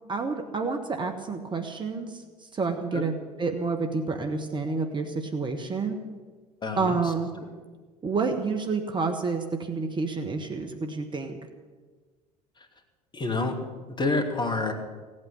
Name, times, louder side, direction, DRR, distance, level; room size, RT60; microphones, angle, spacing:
voice 1, 0.1-2.2 2.5-6.0 6.8-7.3 8.0-11.4, right 4 dB, 25° right, 5 dB, 1.5 m, -29 dB
voice 2, 6.6-7.0 7.4-7.5 13.1-13.6 13.9-14.7, left 3 dB, 25° left, 4 dB, 2.6 m, -28 dB
17.0 x 8.6 x 10.0 m, 1.4 s
figure-of-eight pair, 70°, 20 cm